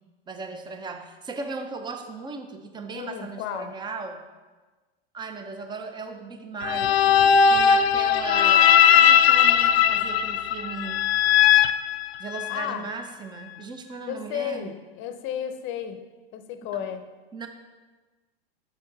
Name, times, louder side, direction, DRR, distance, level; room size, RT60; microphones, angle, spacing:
voice 1, 0.3-4.2 5.1-11.1 12.2-14.8 16.7-16.8 17.3-17.5, right 4 dB, 15° right, 7 dB, 0.6 m, -37 dB
voice 2, 2.9-3.7 12.5-12.9 14.1-16.0 16.3-17.1, left 9 dB, 40° left, 8 dB, 0.7 m, -33 dB
sound 1, 6.6-12.6, left 8 dB, 85° left, 0.4 m, -19 dB
7.1 x 5.7 x 4.0 m, 1.3 s
hypercardioid pair, 115°, 30 cm